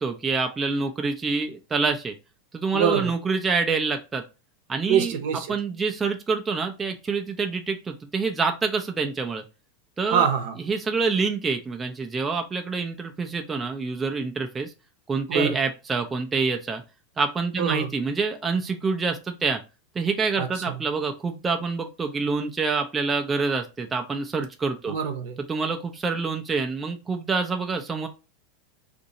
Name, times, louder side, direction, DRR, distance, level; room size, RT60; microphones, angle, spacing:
voice 1, 0.0-2.1 2.5-4.2 4.7-5.2 5.5-9.4 10.0-10.3 10.7-14.7 15.1-16.8 17.2-19.6 19.9-25.0 25.5-28.1, right 4 dB, 20° right, 0.5 m, -26 dB
voice 2, 2.7-3.1 4.9-5.5 10.1-10.6 15.3-15.5 17.6-17.9 20.4-20.8 24.9-25.4, right 7 dB, 70° right, 0.8 m, -25 dB
2.7 x 2.6 x 4.0 m
hypercardioid pair, 115°, 0 cm